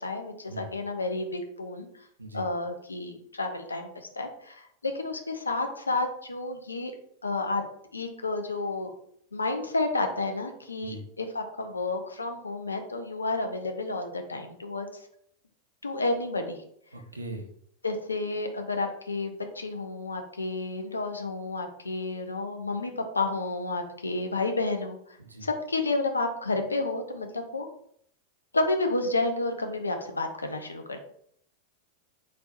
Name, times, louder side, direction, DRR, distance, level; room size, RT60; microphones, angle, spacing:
voice 1, 0.0-1.9 2.3-6.9 7.2-7.6 7.9-8.9 9.3-14.9 15.8-16.6 17.8-25.0 25.4-27.7 28.5-31.0, left 2 dB, 80° left, 5 dB, 0.6 m, -30 dB
voice 2, 16.9-17.5 25.2-25.5, right 1 dB, 80° right, 4 dB, 0.7 m, -40 dB
4.3 x 4.1 x 2.5 m, 0.67 s
figure-of-eight pair, 90°, 0 cm